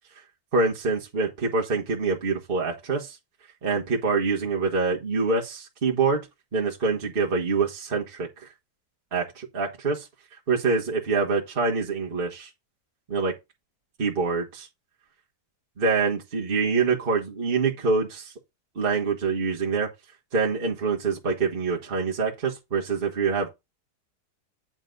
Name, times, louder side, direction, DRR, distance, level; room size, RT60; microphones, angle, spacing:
voice 1, 0.5-3.1 3.6-6.2 6.5-8.5 9.1-10.1 10.5-12.5 13.1-13.3 14.0-14.7 15.8-18.3 18.7-19.9 20.3-23.5, right 4 dB, 35° right, 1.6 m, -25 dB
9.2 x 4.0 x 3.9 m
omnidirectional pair, 1.8 m